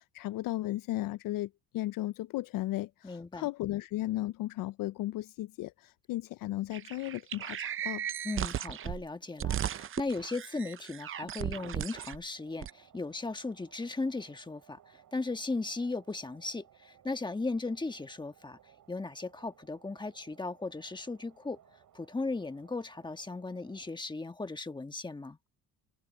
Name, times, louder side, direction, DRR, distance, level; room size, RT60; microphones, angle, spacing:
voice 1, 0.0-8.0, left 16 dB, 65° left, 0.5 m, -35 dB
voice 2, 3.0-3.5 8.2-18.6 18.9-21.6 21.9-25.4, left 3 dB, 10° left, 1.4 m, -37 dB
sound 1, 6.7-9.0 9.4-12.2 12.6-12.7, right 10 dB, 35° right, 0.5 m, -36 dB
sound 2, 12.3-23.9, right 10 dB, 60° right, 6.8 m, -62 dB
cardioid pair, 95°, 36 cm